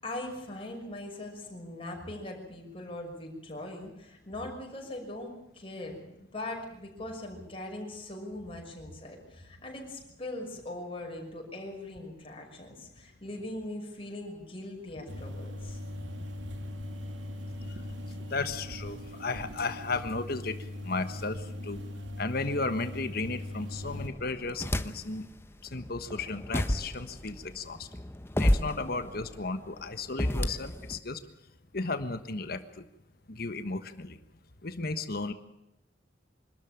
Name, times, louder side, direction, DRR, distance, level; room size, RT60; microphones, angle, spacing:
voice 1, 0.0-15.8, left 1 dB, 30° left, 0 dB, 6.0 m, -41 dB
sound 1, 15.1-24.1, left 1 dB, 85° right, 2.4 m, -40 dB
voice 2, 18.1-20.6 20.8-21.8 22.2-25.3 25.7-27.9 28.4-31.2 31.7-32.8 33.3-34.2 34.6-35.3, left 3 dB, 55° left, 9 dB, 1.4 m, -34 dB
sound 2, 23.7-25.3 25.7-31.0, left 1 dB, 15° left, 0.9 m, -31 dB
25.0 x 13.0 x 8.9 m, 0.90 s
head